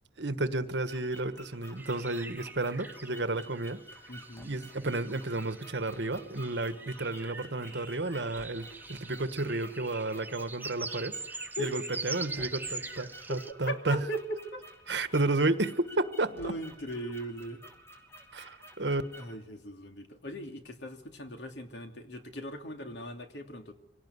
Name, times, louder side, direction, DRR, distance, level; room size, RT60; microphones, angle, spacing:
voice 1, 0.2-3.8 4.4-14.0 14.9-16.5 18.3-19.0, right 2 dB, 75° right, 11 dB, 1.5 m, -32 dB
sound 1, 0.7-19.4, right 1 dB, 15° left, 2.9 m, -52 dB
sound 2, 1.8-13.5, right 3 dB, 10° right, 0.9 m, -43 dB
voice 2, 4.1-4.6 11.6-11.7 13.3-13.4 13.7-14.6 16.3-17.6 19.2-23.7, equal, 80° left, 5 dB, 2.8 m, -39 dB
24.5 x 18.0 x 9.7 m, 0.87 s
head